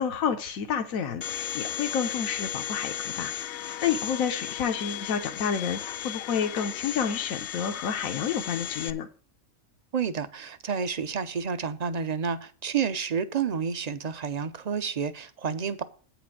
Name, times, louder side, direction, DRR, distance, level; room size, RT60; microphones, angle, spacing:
voice 1, 0.0-3.3 3.6-9.1, left 7 dB, 80° left, 1.2 m, -29 dB
Domestic sounds home sounds, 1.2-8.9, left 11 dB, 65° left, 0.8 m, -35 dB
voice 2, 9.9-15.8, right 6 dB, 45° right, 0.6 m, -30 dB
8.8 x 5.1 x 7.1 m
omnidirectional pair, 1.4 m